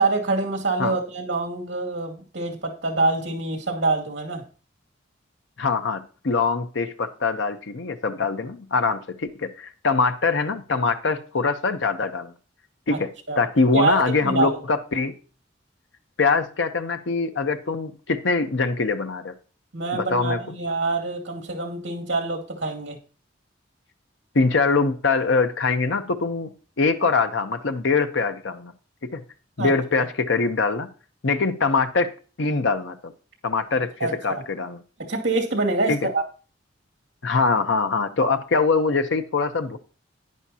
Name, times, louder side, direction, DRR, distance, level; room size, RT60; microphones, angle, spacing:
voice 1, 0.0-4.4 12.9-13.0 13.3-13.4 13.7-14.6 19.7-23.0 29.6-29.7 34.0-34.4 35.0-36.2, right 3 dB, 75° right, 1 dB, 2.4 m, -25 dB
voice 2, 5.6-12.3 12.9-15.1 16.2-19.3 19.9-20.4 24.3-26.5 26.8-28.7 29.0-29.2 29.6-30.9 31.2-32.1 32.4-33.1 33.4-34.8 35.9-36.0 37.2-39.8, left 4 dB, 80° left, 8 dB, 0.8 m, -23 dB
10.5 x 10.0 x 2.8 m, 0.38 s
head